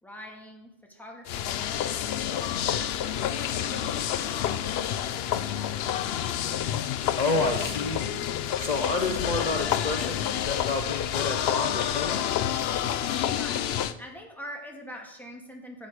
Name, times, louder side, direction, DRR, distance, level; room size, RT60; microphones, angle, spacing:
voice 1, 0.0-1.7 2.1-5.9 13.3-13.7 14.0-15.9, equal, ahead, 0 dB, 2.0 m, -44 dB
sound 1, 1.3-13.9, left 10 dB, 80° left, 0.8 m, -29 dB
voice 2, 7.2-8.2 8.6-12.3, left 3 dB, 45° left, 3 dB, 1.0 m, -29 dB
12.0 x 9.6 x 4.9 m, 0.88 s
omnidirectional pair, 1.0 m